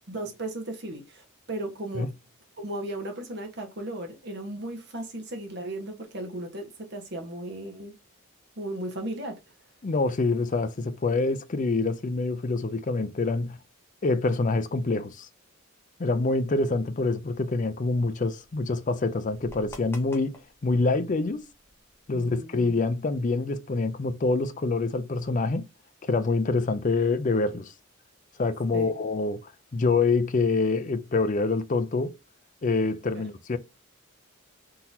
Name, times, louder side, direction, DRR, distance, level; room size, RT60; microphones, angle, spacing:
voice 1, 0.1-2.1 2.6-7.9 8.6-9.4 22.1-22.7 28.7-28.9, right 1 dB, 50° right, 1.2 m, -36 dB
voice 2, 9.8-13.6 14.0-15.3 16.0-21.4 22.1-25.6 26.0-27.7 28.4-32.2 32.6-33.6, left 3 dB, 35° left, 0.4 m, -26 dB
sound 1, 16.3-22.4, left 1 dB, 10° left, 0.9 m, -52 dB
3.8 x 2.9 x 4.1 m
head